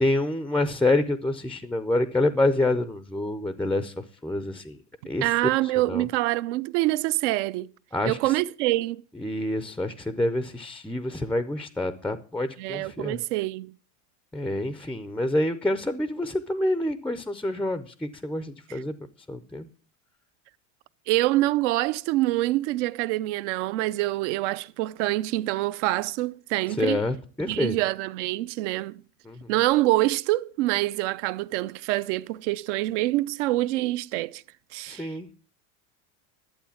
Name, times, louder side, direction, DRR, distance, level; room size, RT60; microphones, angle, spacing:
voice 1, 0.0-4.8 5.0-5.3 5.9-6.1 7.9-8.3 9.1-13.2 14.3-19.7 26.8-27.8 29.3-29.5 34.9-35.3, left 1 dB, 5° left, 0.5 m, -27 dB
voice 2, 5.2-7.7 8.1-9.0 12.6-13.7 18.7-18.8 21.1-27.0 27.5-29.0 29.5-34.4 34.7-35.1, right 17 dB, 65° right, 0.6 m, -26 dB
12.0 x 8.0 x 7.0 m
supercardioid pair, 140°, 39 cm